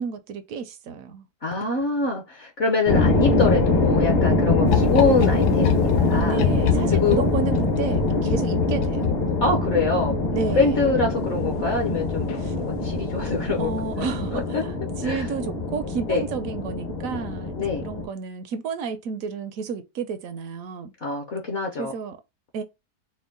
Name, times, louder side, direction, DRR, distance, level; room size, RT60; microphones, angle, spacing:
voice 1, 0.0-1.3 6.2-9.1 10.3-10.9 12.3-12.5 13.6-20.9 21.8-22.2 22.5-22.6, right 6 dB, 70° right, 0.9 m, -31 dB
voice 2, 1.4-6.4 6.9-7.2 8.1-8.3 9.4-10.2 10.5-14.1 14.3-14.6 15.0-15.3 16.1-16.2 17.6-17.9 21.0-21.9, left 3 dB, 55° left, 0.9 m, -24 dB
sound 1, 2.9-18.1, left 2 dB, 40° left, 0.6 m, -24 dB
sound 2, 4.7-9.9 11.6-12.0 12.3-12.4, left 7 dB, 80° left, 1.1 m, -27 dB
4.4 x 2.1 x 3.6 m
omnidirectional pair, 1.7 m